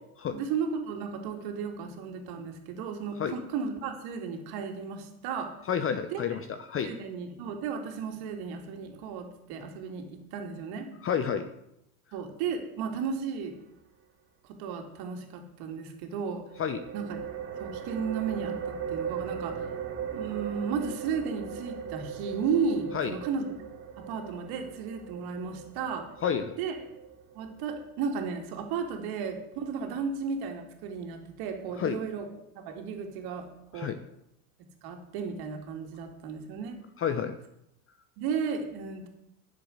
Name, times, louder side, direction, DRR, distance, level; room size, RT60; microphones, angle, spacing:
voice 1, 0.3-5.5 6.1-6.2 6.8-10.9 12.1-13.5 14.6-16.4 16.9-17.3 17.6-19.6 20.0-23.5 24.1-26.1 26.6-26.9 27.3-32.3 32.5-33.5 33.7-33.9 34.8-36.8 38.2-39.1, right 6 dB, 60° right, 4 dB, 2.8 m, -34 dB
voice 2, 5.7-6.9 11.0-11.5 16.6-16.8 22.9-23.1 26.2-26.5 31.8-32.0 33.7-34.0 37.0-37.3, left 8 dB, 30° left, 9 dB, 1.0 m, -29 dB
sound 1, 16.5-27.9, right 7 dB, 30° right, 2.2 m, -39 dB
10.5 x 7.5 x 7.9 m, 0.80 s
hypercardioid pair, 100°, 43 cm